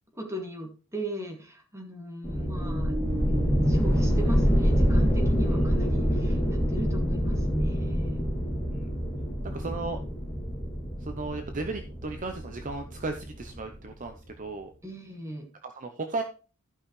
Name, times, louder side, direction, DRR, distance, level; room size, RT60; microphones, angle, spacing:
voice 1, 0.1-3.0 3.7-8.3 14.8-15.4, right 1 dB, 15° right, 1 dB, 2.1 m, -38 dB
sound 1, 2.2-13.7, equal, 10° left, 2.7 m, -26 dB
voice 2, 5.5-5.9 8.7-8.9 9.5-10.0 11.0-14.7 15.6-16.2, right 3 dB, 40° right, 6 dB, 0.7 m, -35 dB
14.5 x 5.5 x 3.2 m, 0.35 s
head